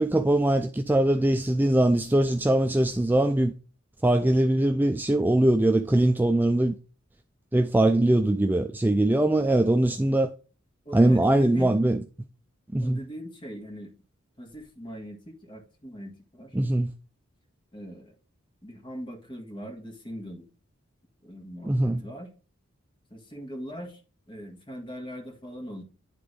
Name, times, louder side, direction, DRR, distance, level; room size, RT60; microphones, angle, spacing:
voice 1, 0.0-3.5 4.0-6.8 7.5-10.3 10.9-12.0 12.7-13.0 16.5-16.9 21.6-22.0, right 1 dB, 10° right, 0.3 m, -22 dB
voice 2, 10.9-11.8 12.8-13.9 14.4-16.6 17.7-18.2 18.6-20.5 21.2-22.3 23.1-24.0 24.3-25.8, equal, 25° left, 1.7 m, -40 dB
9.9 x 3.8 x 5.0 m
head